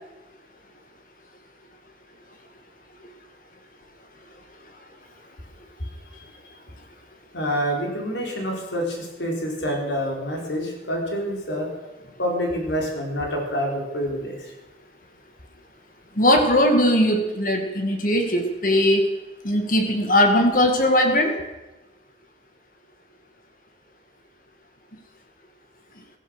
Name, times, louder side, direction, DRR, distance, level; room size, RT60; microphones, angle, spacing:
voice 1, 5.8-6.2 7.3-11.7 12.2-14.5, equal, 85° left, 0 dB, 4.2 m, -27 dB
voice 2, 16.2-19.0 19.4-21.4, left 1 dB, 45° left, 5 dB, 2.3 m, -19 dB
16.0 x 14.0 x 6.4 m, 1.1 s
head